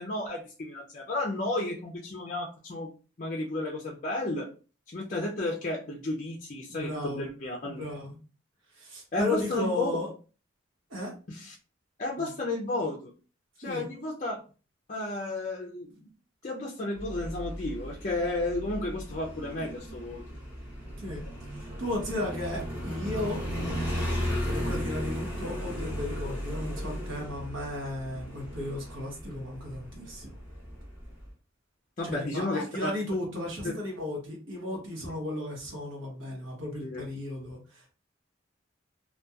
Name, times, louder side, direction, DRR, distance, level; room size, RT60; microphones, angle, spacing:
voice 1, 0.0-2.9 3.2-4.5 4.9-7.8 9.1-9.9 11.3-11.5 12.0-13.1 13.6-14.4 14.9-16.1 16.4-20.2 32.0-32.9 33.6-33.7 36.8-37.1, left 2 dB, 40° left, -2 dB, 0.4 m, -32 dB
voice 2, 6.7-7.2 7.6-8.2 8.7-10.1 10.9-11.1 12.2-12.3 13.6-13.9 21.0-21.2 21.5-23.4 24.4-30.3 32.0-37.9, left 1 dB, 80° right, -1 dB, 0.9 m, -35 dB
Motorcycle, 17.0-31.3, equal, 10° right, 0.8 m, -36 dB
2.8 x 2.2 x 2.3 m, 0.35 s
head